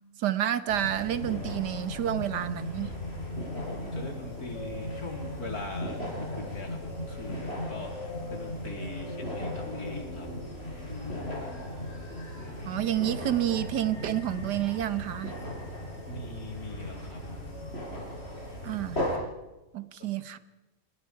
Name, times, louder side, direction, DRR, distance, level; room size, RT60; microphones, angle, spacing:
voice 1, 0.2-2.9 12.6-15.3 18.6-19.0 19.7-20.4, right 12 dB, 85° right, 13 dB, 1.7 m, -29 dB
sound 1, 0.7-19.2, left 1 dB, 35° left, 6.2 m, -37 dB
voice 2, 3.7-10.5 16.1-17.2 20.0-20.1, left 2 dB, 65° left, 3 dB, 3.9 m, -42 dB
sound 2, 7.7-16.7, left 3 dB, 85° left, 3.7 m, -46 dB
28.5 x 21.0 x 4.8 m, 1.0 s
omnidirectional pair, 1.8 m